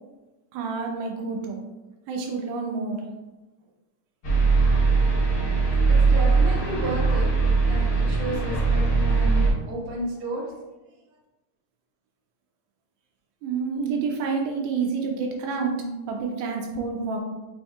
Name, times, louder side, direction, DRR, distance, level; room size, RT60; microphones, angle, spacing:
voice 1, 0.5-1.6 2.1-3.0 13.4-17.2, right 5 dB, 85° right, 2 dB, 2.0 m, -28 dB
sound 1, 4.2-9.5, right 4 dB, 55° left, 1.1 m, -20 dB
voice 2, 5.8-7.4 7.7-10.6, right 1 dB, 55° right, -4 dB, 1.7 m, -33 dB
5.5 x 4.2 x 2.2 m, 1.1 s
omnidirectional pair, 3.5 m